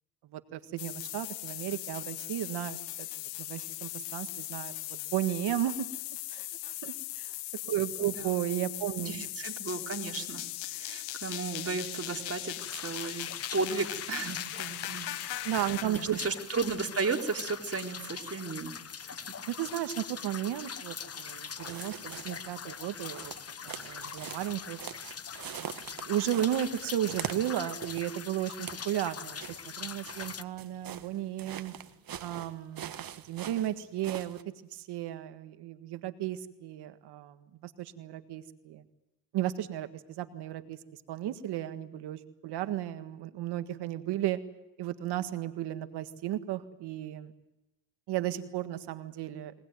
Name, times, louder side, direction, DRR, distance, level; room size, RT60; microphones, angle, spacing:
voice 1, 0.2-3.1 3.4-5.9 6.3-7.3 7.7-9.3 15.4-16.2 19.5-23.3 23.6-24.8 26.0-29.4 29.7-31.7 32.2-34.4 34.7-38.8 39.3-40.8 41.1-44.4 44.8-47.3 48.1-49.5, right 12 dB, 85° right, 10 dB, 1.7 m, -34 dB
sound 1, 0.8-15.8, left 16 dB, 90° left, 0.9 m, -39 dB
voice 2, 8.0-8.4 9.0-15.3 15.8-18.8, right 4 dB, 35° right, 1 dB, 4.2 m, -34 dB
sound 2, 12.6-30.4, left 6 dB, 40° left, 1.2 m, -42 dB
sound 3, 21.6-22.6 23.0-28.2 28.5-28.9 29.4-34.4, right 9 dB, 60° right, 1.6 m, -43 dB
23.0 x 19.5 x 9.4 m, 0.94 s
supercardioid pair, 60°, 39 cm